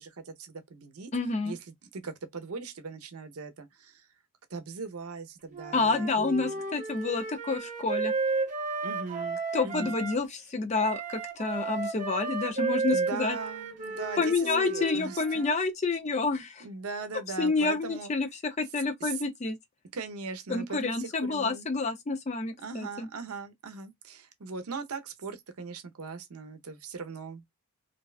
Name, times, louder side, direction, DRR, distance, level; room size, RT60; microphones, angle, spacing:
voice 1, 0.0-1.1 1.4-4.1 4.5-6.6 8.8-9.9 12.9-15.5 16.6-18.1 19.0-19.2 19.9-21.7 22.6-27.6, right 4 dB, 85° right, 0.6 m, -39 dB
voice 2, 1.1-1.5 5.7-8.1 9.5-13.4 14.2-16.6 17.4-19.6 20.5-23.1, left 3 dB, 30° left, 0.4 m, -29 dB
Wind instrument woodwind instrument, 5.5-10.2 10.7-15.6, right 4 dB, 35° right, 0.5 m, -33 dB
2.6 x 2.2 x 2.3 m
head